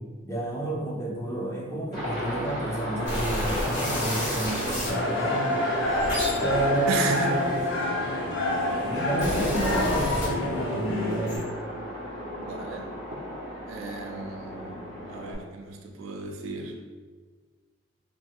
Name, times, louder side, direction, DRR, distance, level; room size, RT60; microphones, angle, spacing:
voice 1, 0.2-5.7 6.4-7.8 8.8-11.4, right 1 dB, 15° left, -4 dB, 0.5 m, -31 dB
Aircraft, 1.9-15.4, equal, 50° left, 1.3 m, -34 dB
sound 1, 3.0-5.0 5.7-8.1 8.8-10.8 11.0-11.4, equal, 90° left, 1.2 m, -31 dB
sound 2, 4.8-11.4, left 1 dB, 70° left, 0.6 m, -28 dB
voice 2, 6.9-7.3 12.4-12.9 13.7-14.8 15.1-16.7, right 4 dB, 85° right, 3 dB, 0.4 m, -33 dB
2.6 x 2.4 x 2.9 m, 1.4 s
head